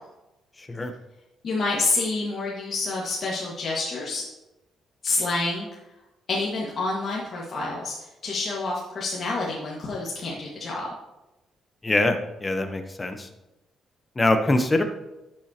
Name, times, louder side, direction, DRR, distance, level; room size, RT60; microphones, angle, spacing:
voice 1, 0.6-0.9 11.8-13.3 14.2-14.8, left 2 dB, 20° left, 6 dB, 0.9 m, -23 dB
voice 2, 1.4-4.2 5.0-5.8 6.3-10.9, left 3 dB, 50° left, -5 dB, 1.8 m, -28 dB
11.5 x 7.4 x 2.9 m, 0.97 s
cardioid pair, 90°, 0 cm